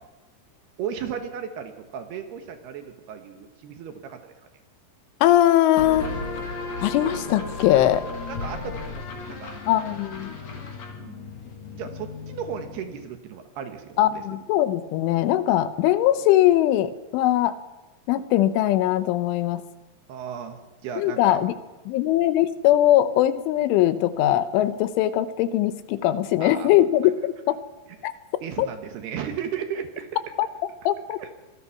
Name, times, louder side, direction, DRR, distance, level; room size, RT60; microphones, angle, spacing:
voice 1, 0.8-4.3 8.3-9.6 10.9-11.3 11.7-14.2 20.1-20.6 20.8-21.4 26.4-26.7 28.0-28.1 28.4-30.2 31.2-31.3, right 8 dB, 65° right, 7 dB, 3.1 m, -35 dB
voice 2, 5.2-6.1 6.8-8.1 9.7-10.3 14.0-17.5 18.1-19.6 21.0-21.5 21.9-27.6 28.0-28.1 28.6-28.7 30.4-30.5 30.9-31.2, left 13 dB, 85° left, 13 dB, 3.3 m, -21 dB
sound 1, 5.8-13.1, left 3 dB, 40° left, 3.5 m, -35 dB
25.5 x 20.5 x 5.9 m, 1.1 s
omnidirectional pair, 5.5 m